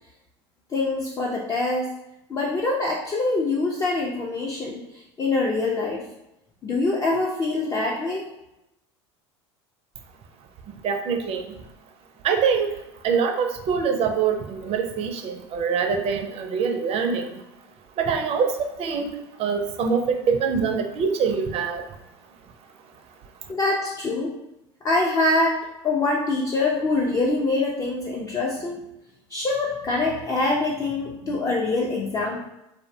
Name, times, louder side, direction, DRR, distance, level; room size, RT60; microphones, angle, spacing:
voice 1, 0.7-1.9 2.3-6.0 6.6-8.3 23.5-24.3 24.8-25.6 25.8-28.8 29.3-32.4, left 2 dB, 25° left, -1 dB, 0.4 m, -24 dB
voice 2, 10.8-11.5 12.2-12.8 13.0-17.4 18.0-21.9, right 6 dB, 45° right, 5 dB, 0.4 m, -24 dB
2.5 x 2.1 x 2.6 m, 0.90 s
hypercardioid pair, 85°, 15 cm